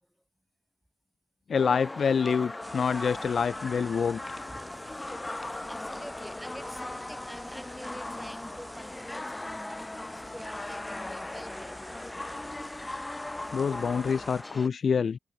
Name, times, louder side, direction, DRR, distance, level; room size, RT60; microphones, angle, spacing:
voice 1, 1.5-4.4 13.5-15.2, left 6 dB, 60° left, 0.3 m, -27 dB
sound 1, 1.5-14.7, left 2 dB, 20° left, 5.6 m, -39 dB
sound 2, 2.6-14.4, right 2 dB, 25° right, 7.4 m, -50 dB
voice 2, 5.5-11.9, equal, ahead, 5.2 m, -46 dB
supercardioid pair, 50°, 0 cm